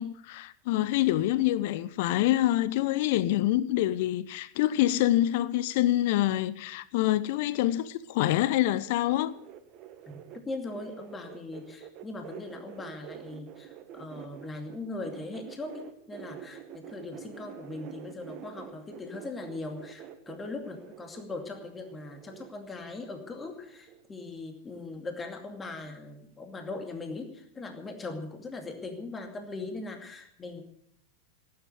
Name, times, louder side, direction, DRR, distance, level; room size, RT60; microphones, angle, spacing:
voice 1, 0.0-9.3, left 14 dB, 50° left, 0.7 m, -26 dB
sound 1, 8.1-14.8 15.0-24.1 24.3-24.8 25.1-25.2, right 10 dB, 40° right, 1.6 m, -47 dB
voice 2, 10.0-30.6, left 3 dB, 15° left, 2.4 m, -40 dB
17.0 x 9.6 x 8.2 m
figure-of-eight pair, 90°, 0 cm